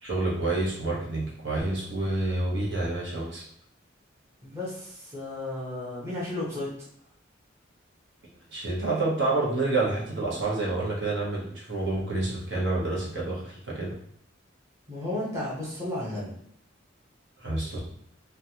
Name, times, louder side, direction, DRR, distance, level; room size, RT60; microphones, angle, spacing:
voice 1, 0.0-3.4 8.5-13.9 17.4-17.8, right 2 dB, 60° right, -5 dB, 1.0 m, -28 dB
voice 2, 4.4-6.7 14.9-16.3, left 1 dB, 15° right, -7 dB, 0.8 m, -33 dB
3.1 x 2.3 x 2.8 m, 0.72 s
head